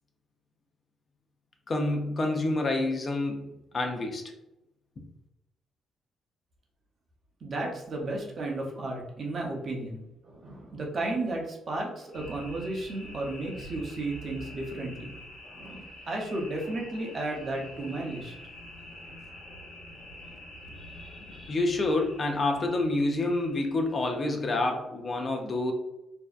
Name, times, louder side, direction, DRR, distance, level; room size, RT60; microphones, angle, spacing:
voice 1, 1.7-3.5 3.7-4.2 21.3-25.7, left 2 dB, 40° left, 3 dB, 0.5 m, -28 dB
voice 2, 7.4-15.1 15.5-18.3, right 2 dB, 45° right, 0 dB, 0.6 m, -34 dB
sound 1, 12.1-24.7, equal, 65° left, 0.8 m, -46 dB
2.6 x 2.1 x 2.3 m, 0.92 s
cardioid pair, 90°, 0 cm